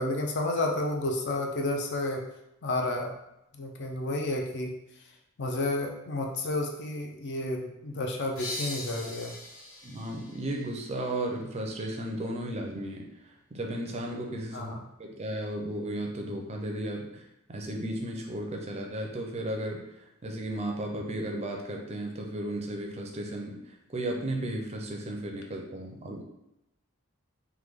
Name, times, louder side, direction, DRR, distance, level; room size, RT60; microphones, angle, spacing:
voice 1, 0.0-2.3 2.6-3.1 3.5-4.7 5.4-9.3 14.5-14.8, left 2 dB, 55° left, 2 dB, 0.5 m, -31 dB
sound 1, 8.4-11.8, left 1 dB, 70° left, 1.0 m, -41 dB
voice 2, 9.8-14.7 15.0-26.2, right 1 dB, 30° right, 1 dB, 0.4 m, -35 dB
3.2 x 2.2 x 3.5 m, 0.87 s
head